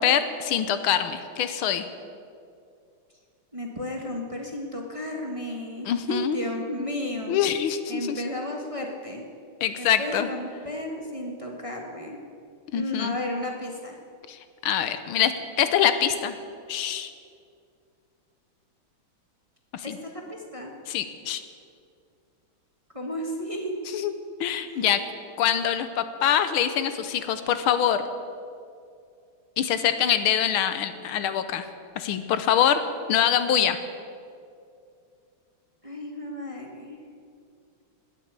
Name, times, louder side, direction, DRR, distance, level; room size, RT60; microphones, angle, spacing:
voice 1, 0.0-1.8 5.9-6.4 7.3-8.2 9.6-10.3 12.7-13.2 14.3-15.3 15.6-16.3 16.7-17.1 19.7-20.0 20.9-21.4 23.9-24.1 24.4-25.0 25.4-28.0 29.6-31.7 32.0-32.8 33.1-33.8, left 9 dB, 75° left, 10 dB, 1.6 m, -24 dB
voice 2, 3.5-7.4 7.9-9.2 9.8-12.2 12.7-14.0 19.8-20.7 22.9-23.8 24.7-25.0 35.8-37.0, left 1 dB, 20° right, 0 dB, 1.3 m, -33 dB
20.0 x 7.4 x 8.1 m, 2.3 s
omnidirectional pair, 2.4 m